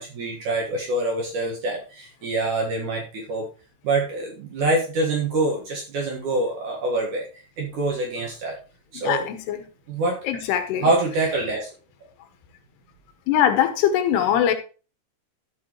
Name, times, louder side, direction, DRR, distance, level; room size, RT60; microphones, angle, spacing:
voice 1, 0.0-3.5 3.8-8.6 8.9-9.3 9.9-10.5 10.8-11.7, right 2 dB, 55° right, 2.6 m, -25 dB
voice 2, 9.0-9.6 10.3-10.8 13.3-14.5, left 10 dB, 80° left, 3.1 m, -21 dB
14.0 x 6.0 x 3.0 m
omnidirectional pair, 4.8 m